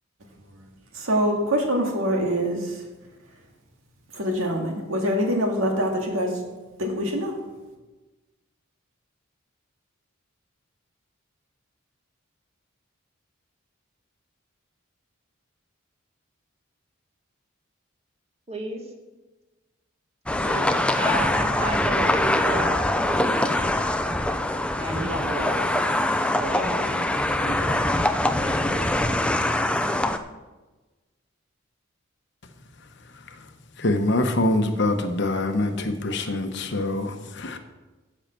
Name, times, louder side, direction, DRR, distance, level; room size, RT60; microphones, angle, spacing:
voice 1, 0.9-2.8 4.1-6.3 6.8-7.3, equal, 75° right, 1 dB, 2.1 m, -24 dB
voice 2, 18.5-18.8 20.4-20.7 21.0-22.8 23.1-23.5 24.8-25.7 26.4-28.9, right 1 dB, 30° right, 1 dB, 1.7 m, -32 dB
sound 1, 20.3-30.2, left 1 dB, 5° left, 0.4 m, -23 dB
voice 3, 33.8-37.6, left 2 dB, 55° left, 7 dB, 0.9 m, -24 dB
10.5 x 5.7 x 7.5 m, 1.2 s
head